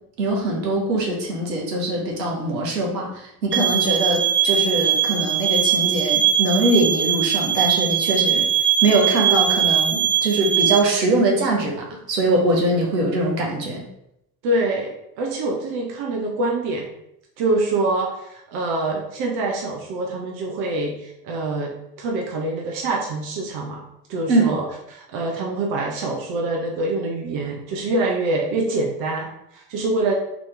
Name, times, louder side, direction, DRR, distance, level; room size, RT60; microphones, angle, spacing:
voice 1, 0.2-8.5 8.8-13.8 24.3-24.5, right 2 dB, 80° right, 0 dB, 1.1 m, -22 dB
sound 1, 3.5-10.8, right 9 dB, 25° right, 0.6 m, -20 dB
voice 2, 14.4-14.9 15.2-16.9 17.4-23.8 24.1-24.6 24.9-30.1, right 2 dB, 60° right, 0 dB, 0.9 m, -25 dB
4.2 x 2.9 x 3.3 m, 0.81 s
hypercardioid pair, 60°, 49 cm